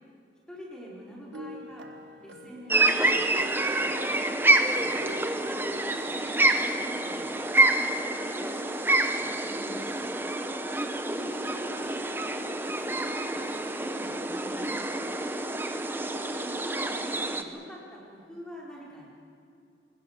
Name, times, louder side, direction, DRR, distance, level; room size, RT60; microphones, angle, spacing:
voice 1, 0.5-1.9 2.2-4.9 5.4-7.3 7.7-10.3 11.2-14.7 15.9-19.1, equal, 5° left, -4 dB, 4.5 m, -46 dB
sound 1, 1.3-6.8, equal, 80° right, 1.7 m, -44 dB
sound 2, 2.7-17.4, right 2 dB, 10° right, 1.0 m, -27 dB
25.5 x 21.0 x 6.8 m, 2.5 s
head